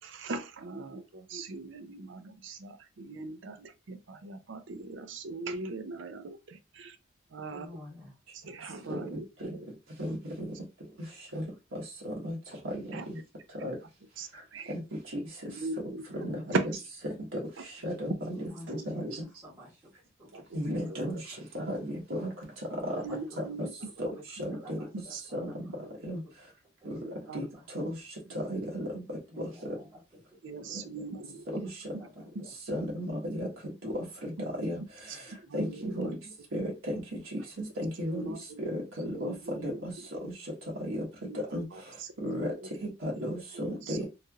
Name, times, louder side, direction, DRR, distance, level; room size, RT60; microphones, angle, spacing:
voice 1, 0.0-7.0 7.3-7.7 8.3-9.7 11.3-11.4 12.9-13.1 14.2-14.7 15.4-16.0 16.5-16.8 17.6-17.7 18.3-18.4 18.8-18.9 19.2-19.3 20.3-21.0 21.9-22.0 22.9-23.7 25.1-25.2 27.0-27.5 27.8-27.9 28.5-28.6 30.4-31.5 31.9-32.1 32.3-32.5 35.1-36.1 37.3-37.6 38.0-38.6 39.0-40.1 41.2-41.4 41.7-42.7 43.2-43.3 43.8-44.1, right 3 dB, 65° right, 0.5 m, -40 dB
voice 2, 7.5-8.1 18.4-19.1 19.4-19.8 20.2-20.4 20.8-20.9 21.3-21.4 22.8-23.2 23.8-24.2 24.5-25.4 26.8-27.6 29.3-30.0 30.3-30.8 31.8-32.5, left 1 dB, 25° right, 1.6 m, -50 dB
voice 3, 17.8-18.4 18.9-19.0 20.5-21.2 21.5-21.6 22.2-22.3 24.0-24.1 24.5-24.6 25.4-25.5 26.1-26.2 27.3-27.4 28.5-28.9 32.7-33.1 33.4-33.5 34.6-34.8 35.5-36.1 36.5-36.7 38.1-38.3 39.0-39.3 39.6-39.7 41.5-41.6 42.2-42.5 43.0-44.0, equal, 85° right, 1.1 m, -33 dB
3.2 x 2.8 x 2.3 m
head